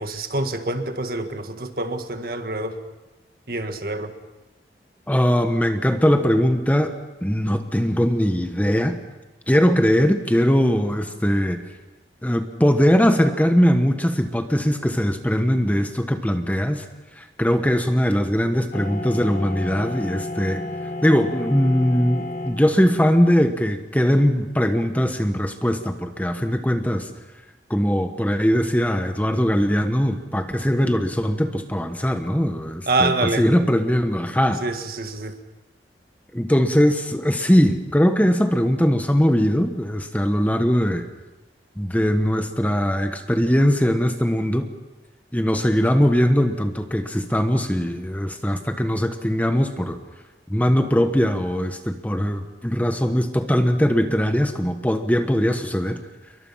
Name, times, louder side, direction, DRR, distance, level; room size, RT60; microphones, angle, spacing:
voice 1, 0.0-2.8 3.5-4.1 32.9-33.5 34.6-35.3, right 2 dB, 55° right, 7 dB, 1.8 m, -26 dB
voice 2, 5.1-6.9 7.2-9.0 9.5-11.6 12.2-16.8 17.2-20.6 21.0-27.1 27.7-34.6 36.3-41.0 41.8-44.7 45.3-50.0 50.5-56.0, equal, 10° left, 7 dB, 1.2 m, -20 dB
sound 1, 18.7-23.0, left 2 dB, 45° left, 1.6 m, -32 dB
28.5 x 23.0 x 5.7 m, 1.1 s
head